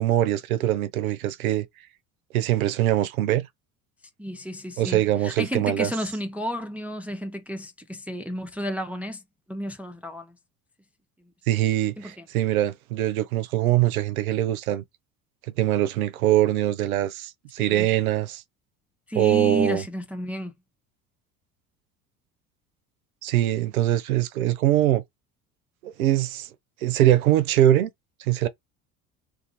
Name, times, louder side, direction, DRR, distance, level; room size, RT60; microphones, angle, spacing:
voice 1, 0.0-1.7 2.3-3.5 4.8-5.9 11.5-14.8 15.6-18.4 19.1-19.8 23.2-25.0 25.8-26.5 26.8-27.9 28.2-28.5, right 13 dB, 85° right, 0.6 m, -22 dB
voice 2, 4.2-9.2 9.5-10.4 12.0-12.3 17.6-17.9 19.1-20.5, equal, 5° right, 0.4 m, -32 dB
2.5 x 2.4 x 2.7 m
hypercardioid pair, 70°, 41 cm